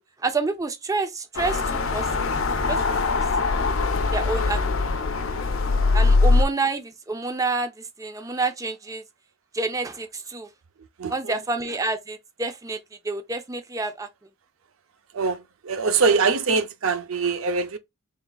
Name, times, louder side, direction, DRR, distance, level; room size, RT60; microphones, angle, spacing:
voice 1, 0.2-2.1 2.7-3.2 4.1-4.8 5.9-9.0 9.5-10.5 11.1-14.1, right 3 dB, 15° right, 0.5 m, -28 dB
sound 1, 1.4-6.4, left 3 dB, 85° left, 0.7 m, -22 dB
voice 2, 11.0-11.4 15.1-17.8, right 4 dB, 85° right, 0.5 m, -23 dB
3.7 x 3.7 x 2.3 m
head